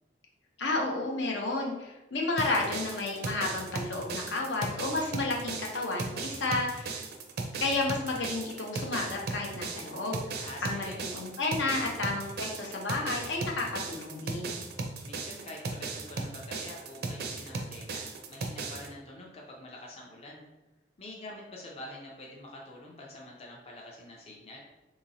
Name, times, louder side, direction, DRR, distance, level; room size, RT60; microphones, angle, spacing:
voice 1, 0.6-7.0 7.6-10.4 10.6-14.6, left 2 dB, 75° left, 0 dB, 0.7 m, -32 dB
sound 1, 2.4-18.9, right 3 dB, 55° right, 0.4 m, -37 dB
voice 2, 10.3-11.0 15.0-20.4 21.0-24.6, left 1 dB, 30° left, -2 dB, 0.5 m, -46 dB
3.7 x 2.9 x 2.6 m, 1.1 s
head